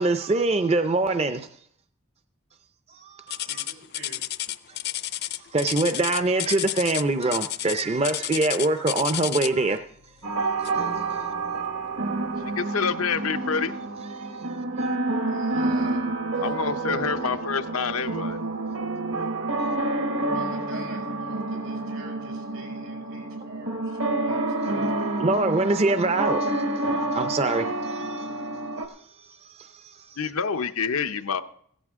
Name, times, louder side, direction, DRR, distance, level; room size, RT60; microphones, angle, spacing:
voice 1, 0.0-1.5 2.9-3.7 4.7-4.8 5.5-9.8 10.8-10.9 14.2-14.4 25.2-26.6 27.1-28.3 29.2-30.2, right 2 dB, 30° right, 0.5 m, -24 dB
sound 1, 3.3-9.7 10.6-10.9 11.4-11.6 12.2-12.3, left 13 dB, 50° left, 0.4 m, -31 dB
voice 2, 3.4-4.2 15.3-16.5 17.2-17.3 20.3-25.1, right 2 dB, 85° right, 5.7 m, -45 dB
sound 2, 10.2-28.9, right 2 dB, 70° right, 1.4 m, -28 dB
voice 3, 12.4-13.7 16.4-18.4 30.2-31.4, left 5 dB, 90° left, 0.8 m, -27 dB
16.0 x 13.5 x 3.6 m
head